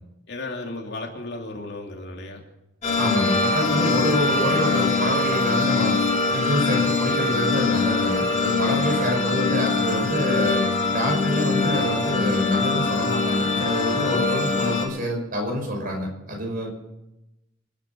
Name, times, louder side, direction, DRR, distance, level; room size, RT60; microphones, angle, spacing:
voice 1, 0.3-2.4, left 2 dB, 55° left, 1 dB, 2.7 m, -34 dB
sound 1, 2.8-14.8, left 3 dB, 35° left, 3.2 m, -23 dB
voice 2, 3.0-6.0 6.3-10.6 10.9-16.7, equal, 45° right, 1 dB, 5.7 m, -26 dB
26.5 x 8.9 x 5.7 m, 0.93 s
head